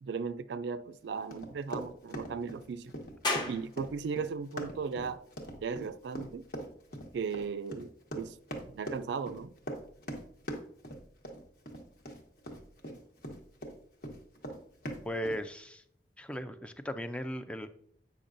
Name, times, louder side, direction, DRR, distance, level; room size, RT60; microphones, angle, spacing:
voice 1, 0.0-2.9 3.4-5.2 5.6-6.4 7.1-8.4 8.7-9.5, right 5 dB, 70° right, 0.3 m, -37 dB
Run, 1.3-13.7 14.0-15.4, equal, 55° left, 1.2 m, -41 dB
sound 1, 3.2-16.4, left 2 dB, 25° left, 1.0 m, -45 dB
voice 2, 15.0-15.8 16.2-17.7, equal, 5° left, 0.3 m, -37 dB
8.4 x 6.0 x 2.6 m
head